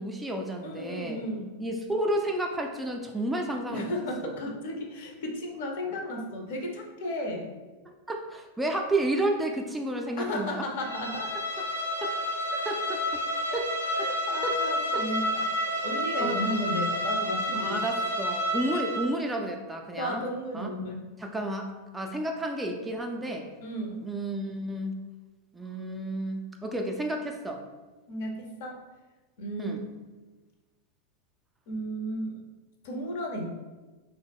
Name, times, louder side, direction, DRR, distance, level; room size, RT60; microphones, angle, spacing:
voice 1, 0.0-1.2 1.6-3.9 4.2-4.4 7.9-10.7 11.6-11.7 12.0-12.1 12.7-13.2 13.5-13.7 14.0-14.1 14.4-14.6 14.9-15.0 16.2-16.4 17.6-20.2 20.5-20.7 21.2-23.5 24.0-24.9 25.5-27.6 29.6-29.8, right 1 dB, 10° right, 2 dB, 0.3 m, -31 dB
voice 2, 0.6-1.5 3.7-7.5 10.2-11.3 12.0-12.1 12.5-12.6 13.5-13.6 14.0-17.8 20.0-21.0 23.6-24.0 28.1-28.8 29.4-29.8 31.7-32.4 32.8-33.5, equal, 55° left, 2 dB, 0.5 m, -34 dB
Bowed string instrument, 10.8-19.1, equal, 90° right, 0.5 m, -30 dB
3.4 x 2.0 x 3.4 m, 1.2 s
figure-of-eight pair, 90°, 0 cm